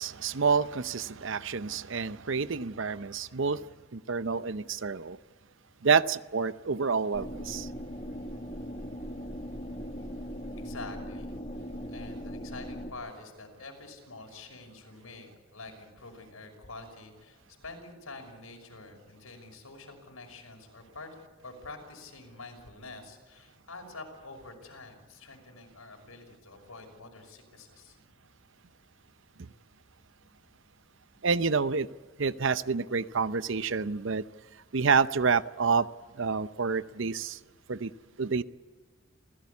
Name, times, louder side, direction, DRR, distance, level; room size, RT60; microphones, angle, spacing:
voice 1, 0.0-3.6 3.9-5.2 5.8-7.7 31.2-31.9 32.2-34.2 34.7-35.9 36.2-37.4 37.7-37.9 38.2-38.4, right 5 dB, 60° right, 0.7 m, -28 dB
sound 1, 7.1-12.9, equal, 30° left, 1.8 m, -39 dB
voice 2, 10.6-11.4 11.9-21.1 21.4-28.0, left 3 dB, 85° left, 5.9 m, -47 dB
28.5 x 16.5 x 8.4 m
head